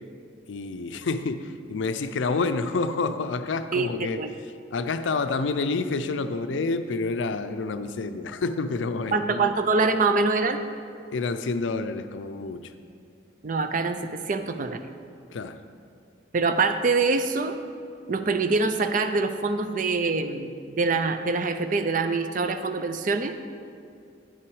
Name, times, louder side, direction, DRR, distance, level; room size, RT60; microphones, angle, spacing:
voice 1, 0.5-4.2 4.7-9.5 11.1-12.7 15.3-15.6, left 3 dB, 80° left, 10 dB, 0.4 m, -28 dB
voice 2, 9.1-10.6 13.4-14.8 16.3-17.6 18.1-23.3, right 3 dB, 45° right, 9 dB, 0.4 m, -24 dB
9.3 x 5.9 x 4.7 m, 2.3 s
head